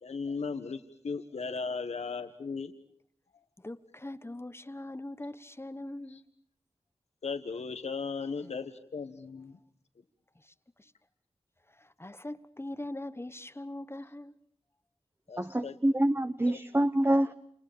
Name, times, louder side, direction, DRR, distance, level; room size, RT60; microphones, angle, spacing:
voice 1, 0.0-2.7 6.1-6.2 7.2-9.6 15.3-15.8 16.5-16.6, left 5 dB, 90° left, 1.4 m, -37 dB
voice 2, 3.6-6.2 10.3-10.9 11.7-14.3, left 1 dB, 25° left, 1.3 m, -42 dB
voice 3, 15.4-17.3, right 1 dB, 20° right, 1.1 m, -26 dB
29.5 x 29.0 x 7.0 m
cardioid pair, 50°, 11 cm